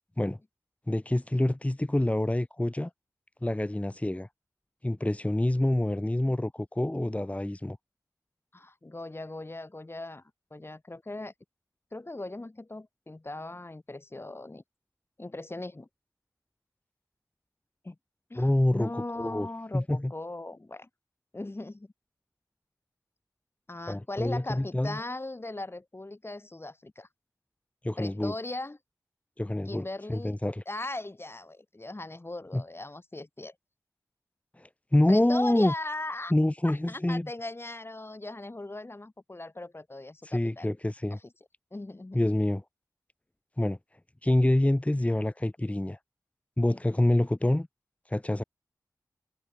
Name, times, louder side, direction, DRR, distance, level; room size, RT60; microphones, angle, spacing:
voice 1, 0.9-2.9 3.4-4.3 4.8-7.8 18.4-19.5 19.7-20.1 23.9-25.0 27.8-28.3 29.4-30.6 32.5-32.6 34.6-35.7 36.3-37.3 40.2-41.2 42.1-42.6 43.6-43.8 44.2-46.0 46.6-47.7 48.1-48.4, left 1 dB, 20° left, 1.4 m, -27 dB
voice 2, 8.5-10.2 10.5-11.3 11.9-14.6 15.2-15.9 17.8-17.9 18.3-20.9 21.3-21.9 23.7-27.1 28.0-28.8 29.6-30.3 30.6-33.5 35.1-36.3 36.6-40.7 41.1-41.2 41.7-42.2 46.7-47.0, left 2 dB, 35° left, 1.8 m, -39 dB
cardioid pair, 45°, 7 cm